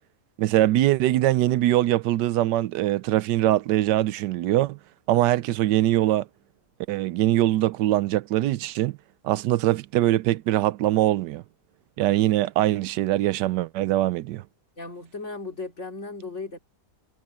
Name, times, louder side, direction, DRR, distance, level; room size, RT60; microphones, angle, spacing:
voice 1, 0.4-4.8 5.1-6.3 6.9-9.0 9.2-11.4 12.0-14.4, right 14 dB, 90° right, 1.2 m, -22 dB
voice 2, 14.8-16.6, left 3 dB, 45° left, 3.3 m, -36 dB
omnidirectional pair, 1.8 m